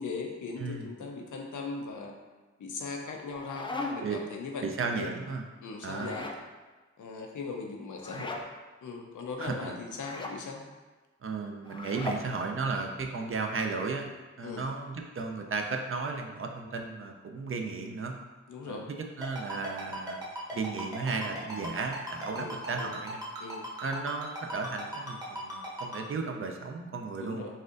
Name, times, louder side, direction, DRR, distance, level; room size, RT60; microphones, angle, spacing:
voice 1, 0.0-2.1 2.6-4.7 4.9-5.1 5.6-6.3 7.0-8.4 8.8-10.6 14.4-14.7 18.5-18.9 22.3-23.0 23.4-23.7 27.2-27.6, left 4 dB, 85° left, 2 dB, 0.5 m, -39 dB
sound 1, 3.1-4.2 5.9-6.4 8.0-8.5 9.9-10.4 11.7-12.3, left 2 dB, 15° left, 0.3 m, -38 dB
voice 2, 4.6-5.4 5.8-6.2 8.1-8.3 9.4-9.7 11.2-14.1 14.4-18.1 18.7-23.2 23.8-27.6, right 4 dB, 45° right, 3 dB, 0.4 m, -34 dB
Ringtone, 19.2-26.0, right 1 dB, 15° right, 0.8 m, -38 dB
4.1 x 2.5 x 2.5 m, 1.2 s
cardioid pair, 60°, 30 cm